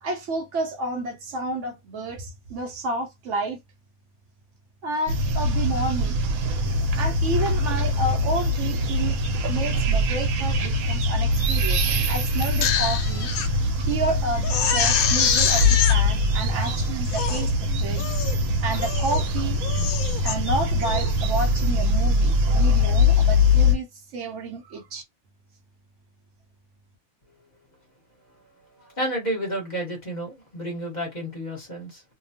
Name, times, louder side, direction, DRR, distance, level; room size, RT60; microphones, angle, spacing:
voice 1, 0.0-3.6 4.8-6.2 6.9-9.2 9.5-13.3 13.8-17.5 17.8-18.1 18.6-19.6 20.2-25.0, right 2 dB, 65° right, 0.9 m, -30 dB
sound 1, 5.1-23.8, left 2 dB, 85° right, 1.2 m, -23 dB
Crying sobbing, 12.4-13.5 13.9-14.0 14.4-16.0 16.6-16.7 17.0-17.5 18.0-18.4 18.8-19.2 19.6-20.4 20.8-21.1, left 7 dB, 90° left, 1.0 m, -25 dB
voice 2, 28.8-32.0, right 1 dB, 35° left, 1.2 m, -31 dB
2.7 x 2.2 x 2.7 m
omnidirectional pair, 1.4 m